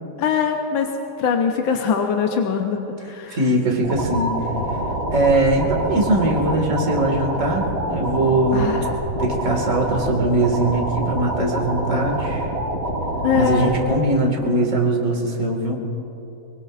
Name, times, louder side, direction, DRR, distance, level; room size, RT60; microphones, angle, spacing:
voice 1, 0.2-0.9 1.2-3.4 8.5-8.8 13.2-13.7, left 7 dB, 65° left, 3 dB, 1.6 m, -22 dB
voice 2, 3.3-4.4 5.1-8.8 9.2-12.5 13.3-15.8, right 2 dB, 35° right, 1 dB, 2.3 m, -21 dB
sound 1, 3.8-13.8, right 1 dB, 60° right, 4.5 m, -26 dB
24.0 x 23.5 x 2.5 m, 2.9 s
omnidirectional pair, 2.4 m